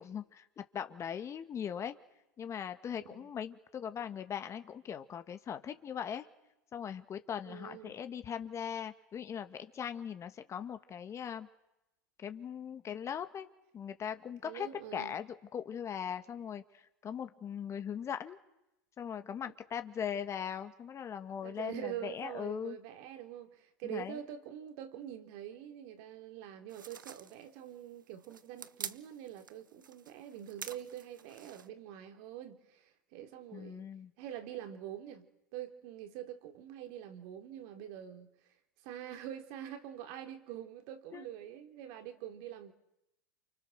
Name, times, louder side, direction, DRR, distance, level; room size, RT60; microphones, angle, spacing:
voice 1, 0.0-2.0 2.4-6.3 6.7-11.5 12.2-13.5 13.7-18.4 19.0-22.8 23.9-24.2 33.5-34.1 41.1-41.2, left 8 dB, 30° left, 8 dB, 2.1 m, -40 dB
voice 2, 7.5-8.0 14.4-15.2 21.4-33.9 34.2-35.3 35.5-38.3 38.8-42.7, right 11 dB, 55° right, 6 dB, 3.6 m, -45 dB
sound 1, 26.7-31.7, right 7 dB, 85° right, 1.0 m, -48 dB
29.5 x 29.0 x 6.7 m, 0.88 s
hypercardioid pair, 100°, 10 cm